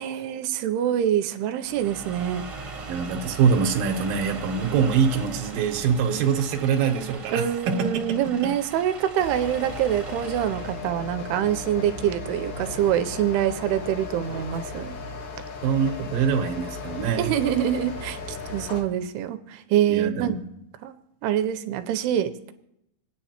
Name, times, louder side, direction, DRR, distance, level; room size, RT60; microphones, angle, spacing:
voice 1, 0.0-2.4 7.3-14.9 17.2-20.5 20.8-22.5, right 10 dB, 85° right, 9 dB, 2.7 m, -25 dB
sound 1, 1.6-11.0, right 4 dB, 35° right, 1.3 m, -39 dB
voice 2, 2.9-7.7 15.6-17.3 19.9-20.4, right 6 dB, 70° right, 2 dB, 2.6 m, -24 dB
sound 2, 9.2-18.8, left 4 dB, 85° left, 1.2 m, -36 dB
27.5 x 9.6 x 2.9 m, 0.84 s
omnidirectional pair, 4.6 m